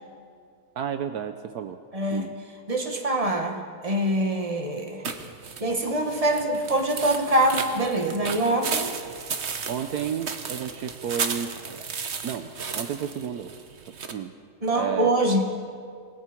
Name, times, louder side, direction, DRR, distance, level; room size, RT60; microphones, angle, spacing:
voice 1, 0.8-1.8 2.1-2.3 9.7-11.6 12.2-13.6 14.0-14.3 14.7-15.1, right 8 dB, 70° right, 8 dB, 1.3 m, -31 dB
voice 2, 1.9-2.3 2.7-5.1 5.6-8.9 14.6-15.4, right 1 dB, 20° right, 3 dB, 1.9 m, -24 dB
sound 1, 5.0-14.1, right 5 dB, 45° right, 1.2 m, -34 dB
28.5 x 20.0 x 4.5 m, 2.2 s
omnidirectional pair, 1.8 m